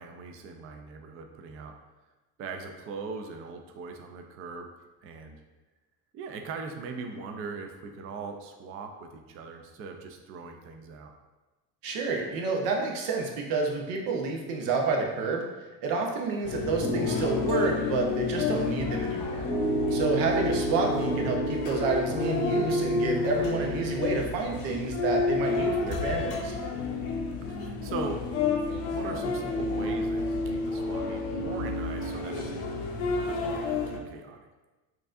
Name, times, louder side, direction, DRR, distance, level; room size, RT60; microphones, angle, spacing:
voice 1, 0.0-1.7 2.4-4.7 5.0-5.4 6.1-11.1 26.6-26.9 27.5-28.2 28.9-32.7 33.2-34.4, right 4 dB, 40° right, 4 dB, 0.4 m, -40 dB
voice 2, 11.8-15.4 15.8-19.4 19.9-26.5, right 4 dB, 85° right, 1 dB, 0.8 m, -29 dB
sound 1, 16.4-34.0, left 3 dB, 85° left, 0.7 m, -31 dB
sound 2, 16.8-19.1 19.4-21.8 22.1-24.1, left 1 dB, 10° left, 0.8 m, -31 dB
4.6 x 2.6 x 2.4 m, 1.1 s
cardioid pair, 115°, 37 cm